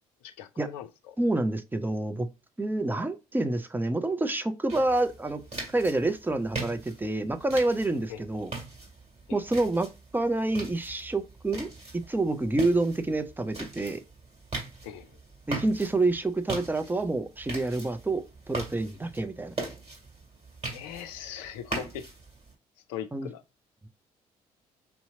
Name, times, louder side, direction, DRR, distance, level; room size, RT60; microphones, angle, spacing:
voice 1, 0.2-1.2 8.1-8.2 9.3-9.4 14.8-15.1 20.7-22.1 22.9-23.4, left 9 dB, 65° left, 0.5 m, -40 dB
voice 2, 1.2-2.3 2.6-5.4 5.7-8.5 9.3-11.7 12.1-14.0 15.5-19.5 23.1-23.3, right 2 dB, 10° right, 0.6 m, -28 dB
sound 1, 4.7-22.5, right 3 dB, 35° right, 2.5 m, -41 dB
5.6 x 2.8 x 2.7 m
figure-of-eight pair, 45°, 19 cm